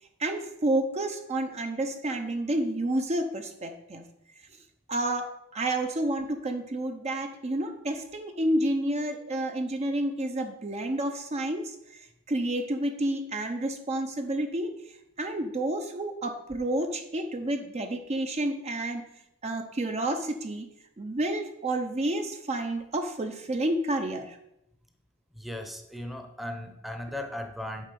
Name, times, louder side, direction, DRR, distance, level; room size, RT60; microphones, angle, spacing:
voice 1, 0.2-4.0 4.9-19.1 19.4-20.7 21.0-24.4, right 1 dB, 30° right, 6 dB, 0.6 m, -30 dB
voice 2, 25.3-27.9, left 1 dB, ahead, 5 dB, 0.8 m, -37 dB
9.1 x 4.1 x 6.8 m, 0.82 s
head